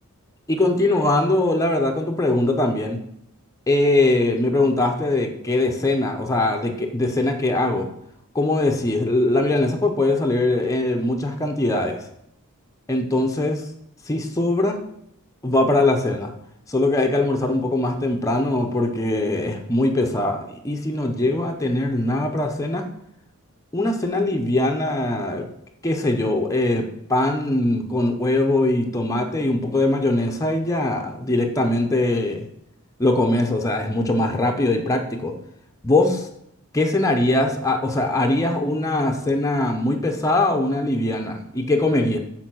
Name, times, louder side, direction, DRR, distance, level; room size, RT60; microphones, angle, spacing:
voice 1, 0.5-3.0 3.7-7.9 8.3-12.0 12.9-13.7 14.1-14.8 15.4-16.3 16.7-22.9 23.7-25.5 25.8-32.5 33.0-35.3 35.8-36.3 36.7-42.2, left 2 dB, 15° left, 2 dB, 0.6 m, -21 dB
6.8 x 3.9 x 6.1 m, 0.74 s
head